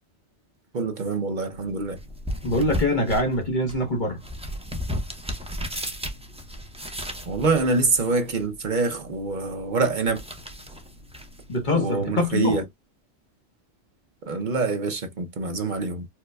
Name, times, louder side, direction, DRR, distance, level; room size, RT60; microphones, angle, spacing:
voice 1, 0.7-2.0 7.3-10.2 11.7-12.6 14.2-16.1, right 3 dB, 50° right, 0.7 m, -25 dB
sound 1, 1.5-12.5, equal, 10° right, 0.4 m, -36 dB
voice 2, 2.4-4.2 11.5-12.6, left 1 dB, 45° left, 1.0 m, -24 dB
4.6 x 2.2 x 2.2 m
omnidirectional pair, 1.2 m